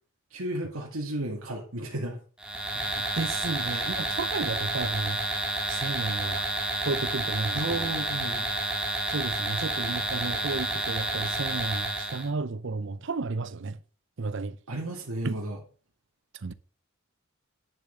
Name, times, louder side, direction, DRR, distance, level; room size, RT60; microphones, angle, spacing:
voice 1, 0.3-2.2 3.6-3.9 7.5-8.5 14.7-15.6, right 1 dB, 80° right, 2.2 m, -33 dB
sound 1, 2.4-12.3, right 1 dB, 5° right, 2.1 m, -30 dB
voice 2, 3.2-5.2 5.7-6.5 6.8-7.9 9.1-13.8 14.2-14.6 15.2-15.4 16.4-16.5, right 3 dB, 60° right, 0.6 m, -32 dB
10.5 x 7.1 x 6.7 m
head